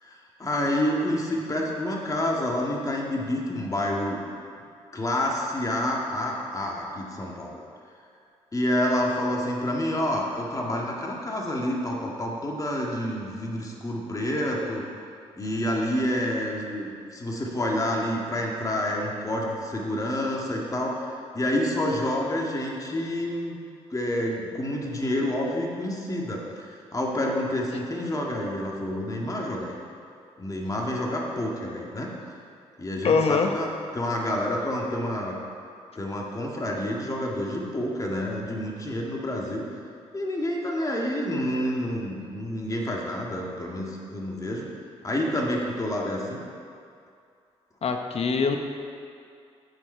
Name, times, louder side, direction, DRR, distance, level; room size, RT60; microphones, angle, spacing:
voice 1, 0.0-4.2 4.9-7.6 8.5-14.8 15.4-23.5 23.9-29.8 30.4-32.1 32.8-33.7 33.9-35.4 36.0-39.7 40.1-44.7 45.0-46.4, left 1 dB, 30° left, -2 dB, 1.9 m, -28 dB
voice 2, 33.0-33.5 47.8-48.6, left 5 dB, 55° left, 5 dB, 0.9 m, -23 dB
14.5 x 5.0 x 4.5 m, 2.4 s
supercardioid pair, 60°, 12 cm